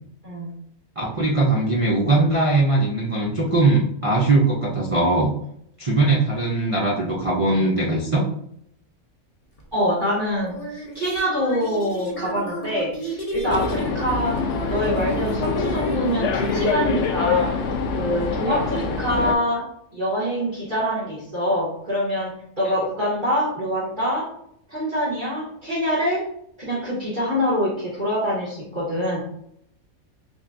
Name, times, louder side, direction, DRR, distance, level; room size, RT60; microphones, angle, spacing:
voice 1, 1.0-5.3 5.8-8.2, right 2 dB, 60° right, -3 dB, 0.3 m, -20 dB
sound 1, 9.6-9.7 10.4-16.7, right 1 dB, 30° left, 0.7 m, -32 dB
voice 2, 9.7-14.4 14.7-17.6 17.9-19.7 19.9-24.3 24.7-26.2 26.6-29.2, equal, 35° right, -7 dB, 1.3 m, -25 dB
sound 2, 13.4-19.3, left 4 dB, 65° left, 0.8 m, -25 dB
6.0 x 2.3 x 2.5 m, 0.72 s
omnidirectional pair, 1.5 m